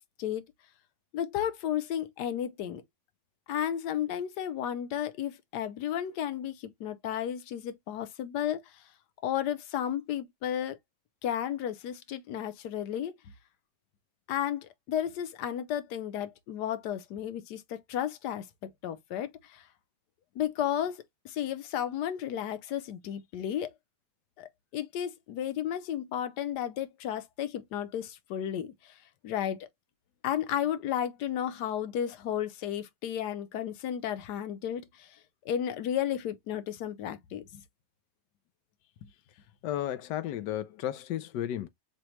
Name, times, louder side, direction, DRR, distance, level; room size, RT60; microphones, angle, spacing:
voice 1, 1.1-2.8 3.5-8.6 9.2-10.8 11.2-13.1 14.3-19.6 20.4-23.7 24.4-28.7 29.2-29.7 30.2-35.1 35.4-37.6 39.0-39.1, left 10 dB, 70° left, 1.3 m, -33 dB
voice 2, 39.6-41.7, left 11 dB, 90° left, 1.3 m, -33 dB
6.1 x 2.2 x 3.0 m
omnidirectional pair, 1.9 m